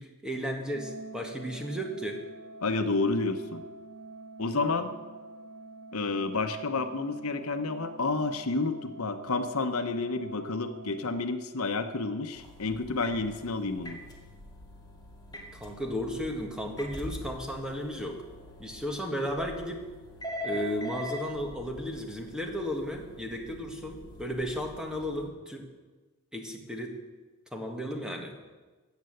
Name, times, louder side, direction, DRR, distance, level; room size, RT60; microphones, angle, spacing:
voice 1, 0.0-2.2 15.5-18.2 18.6-19.9 20.4-25.7 26.3-27.0 27.5-28.3, equal, 5° right, 2 dB, 1.7 m, -34 dB
Organ, 0.7-11.7, right 2 dB, 90° right, 1.7 m, -47 dB
voice 2, 2.6-3.6 4.4-4.9 5.9-14.0, left 3 dB, 75° left, 8 dB, 0.9 m, -30 dB
sound 1, 12.3-25.3, left 1 dB, 20° left, 2.2 m, -43 dB
14.5 x 8.2 x 7.9 m, 1.3 s
head